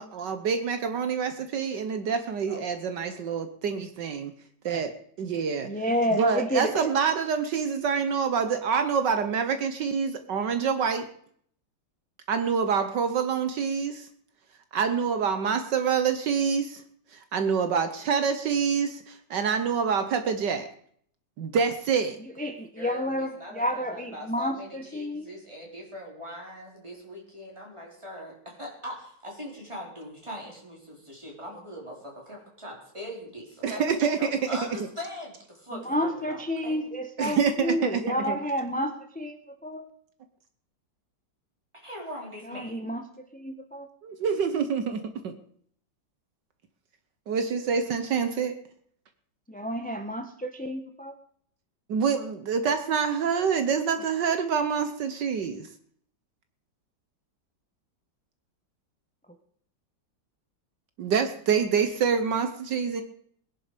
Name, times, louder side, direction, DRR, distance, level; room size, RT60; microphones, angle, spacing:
voice 1, 0.0-4.3 4.6-4.9 5.2-5.7 6.1-11.1 12.3-14.1 14.7-16.8 17.1-20.7 21.4-22.2 33.6-34.4 37.2-38.4 44.0-45.3 47.3-48.6 51.9-55.7 61.0-63.0, right 6 dB, 70° right, 8 dB, 1.6 m, -26 dB
voice 2, 5.6-6.9 22.4-25.3 35.7-38.9 39.2-39.3 39.6-39.9 42.4-43.9 49.5-51.1, equal, 5° left, 5 dB, 0.7 m, -30 dB
voice 3, 22.7-33.8 34.2-36.9 41.8-42.8, equal, 15° right, -2 dB, 4.7 m, -41 dB
20.5 x 11.0 x 5.2 m, 0.63 s
omnidirectional pair, 2.0 m